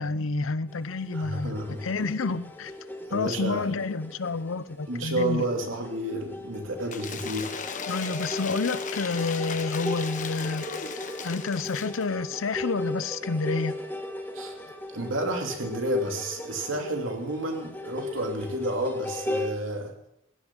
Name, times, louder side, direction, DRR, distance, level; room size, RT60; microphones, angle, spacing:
voice 1, 0.0-2.7 3.1-5.4 7.9-10.6 11.2-13.7, left 3 dB, 85° left, 0.7 m, -29 dB
sound 1, 0.7-19.5, left 1 dB, 10° left, 2.0 m, -38 dB
voice 2, 1.1-1.9 3.1-3.7 4.9-7.6 14.3-14.6 14.9-19.9, right 1 dB, 80° right, 2.8 m, -30 dB
Cheering / Applause / Crowd, 6.9-12.1, left 5 dB, 40° left, 1.1 m, -36 dB
16.0 x 11.0 x 6.1 m
head